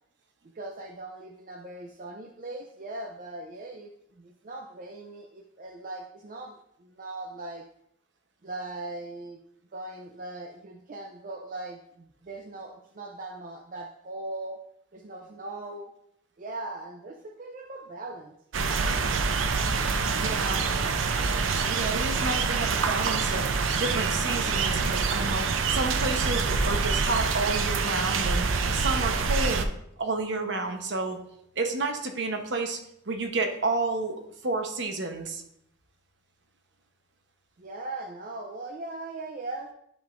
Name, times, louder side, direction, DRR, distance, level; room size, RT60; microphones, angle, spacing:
voice 1, 0.5-7.7 8.4-9.4 9.7-14.6 14.9-15.9 16.4-18.3 37.6-39.7, right 2 dB, 45° right, 2 dB, 0.5 m, -39 dB
sound 1, 18.5-29.7, right 4 dB, 85° right, 0.6 m, -26 dB
voice 2, 20.1-20.7 21.7-23.5 23.8-28.4 28.7-29.7 30.0-31.2 31.6-35.4, right 3 dB, 65° right, 5 dB, 0.9 m, -30 dB
sound 2, 29.9-33.8, left 3 dB, 70° left, 1.1 m, -51 dB
10.5 x 5.2 x 2.5 m, 0.74 s
head